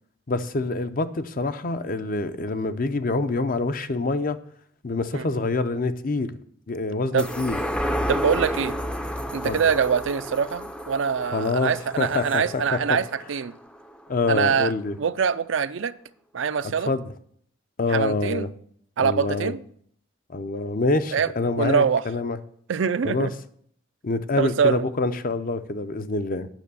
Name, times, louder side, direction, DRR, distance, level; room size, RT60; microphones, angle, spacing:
voice 1, 0.3-4.4 4.8-6.3 6.7-7.6 9.4-9.6 11.3-13.0 14.1-15.0 16.9-17.1 17.8-18.5 19.0-19.5 20.3-22.4 23.0-23.3 24.0-26.5, left 3 dB, 45° left, 11 dB, 0.6 m, -26 dB
sound 1, 7.2-14.0 14.4-14.5, equal, 5° left, 0.5 m, -31 dB
voice 2, 8.1-8.7 9.3-13.5 14.3-14.7 15.0-15.9 16.3-16.9 17.9-18.5 19.0-19.6 21.1-21.3 21.6-22.0 22.7-23.3 24.4-24.8, right 6 dB, 70° right, 13 dB, 0.5 m, -24 dB
9.1 x 6.2 x 6.9 m, 0.63 s
head